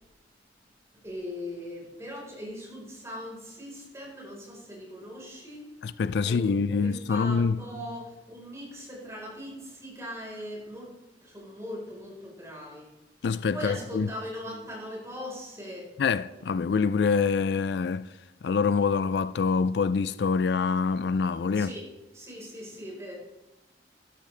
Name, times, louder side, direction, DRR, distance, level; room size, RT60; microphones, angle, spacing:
voice 1, 1.0-12.9 13.5-15.9 21.5-21.9 22.1-23.1, equal, 15° right, 4.3 m, -40 dB
voice 2, 5.8-7.6 13.2-14.1 16.0-18.1 18.4-21.7, left 5 dB, 70° left, 0.4 m, -25 dB
13.5 x 12.0 x 3.3 m
head